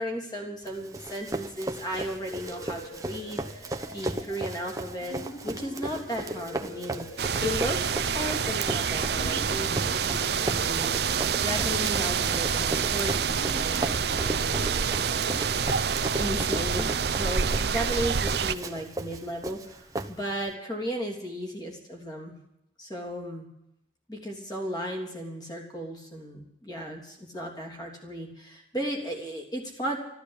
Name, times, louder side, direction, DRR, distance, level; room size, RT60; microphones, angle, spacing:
voice 1, 0.0-5.2 5.4-15.4 15.7-22.3 22.8-23.4 24.1-30.0, equal, 20° left, 1 dB, 3.3 m, -35 dB
Run, 0.6-20.5, right 2 dB, 20° right, 0.8 m, -36 dB
sound 1, 2.3-18.7, left 1 dB, 90° left, 3.0 m, -45 dB
sound 2, 7.2-18.5, right 6 dB, 60° right, 0.6 m, -27 dB
13.5 x 12.5 x 8.3 m, 0.79 s
head